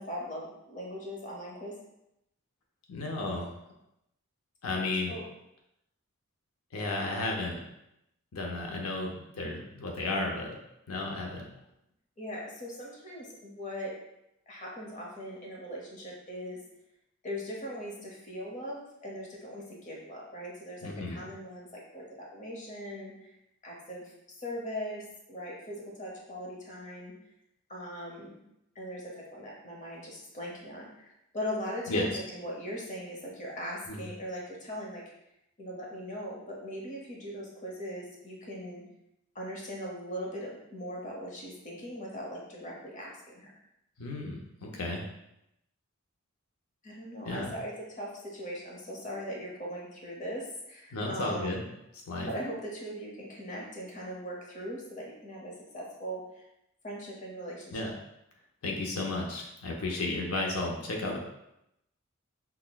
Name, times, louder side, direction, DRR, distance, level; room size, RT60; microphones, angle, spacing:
voice 1, 0.0-1.7 5.1-5.2 12.2-13.9 14.5-16.6 17.2-23.3 23.6-24.0 24.4-27.1 27.7-28.4 28.7-31.1 31.3-35.0 35.6-38.8 39.3-43.5 46.8-51.6 52.3-56.4 56.8-57.9 60.1-60.2, equal, 35° left, -2 dB, 0.8 m, -40 dB
voice 2, 2.9-3.5 4.6-5.1 6.7-7.6 8.3-10.5 10.9-11.4 20.8-21.2 31.9-32.1 33.9-34.0 44.0-45.0 47.2-47.5 50.9-51.6 52.1-52.3 57.7-57.9 58.6-61.2, left 2 dB, 85° left, 0 dB, 0.6 m, -33 dB
5.8 x 2.1 x 2.2 m, 0.83 s
head